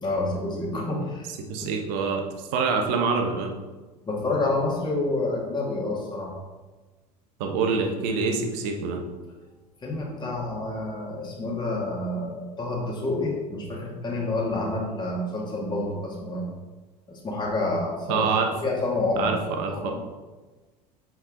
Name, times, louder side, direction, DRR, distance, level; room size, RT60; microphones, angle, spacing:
voice 1, 0.0-1.3 1.6-1.7 4.1-6.3 9.8-16.5 17.1-18.3 18.6-19.9, left 2 dB, 20° left, -4 dB, 2.4 m, -28 dB
voice 2, 1.5-3.5 7.4-9.0 18.1-18.5 19.2-19.9, right 4 dB, 55° right, 4 dB, 1.2 m, -26 dB
7.8 x 4.6 x 3.9 m, 1.2 s
figure-of-eight pair, 70°, 21 cm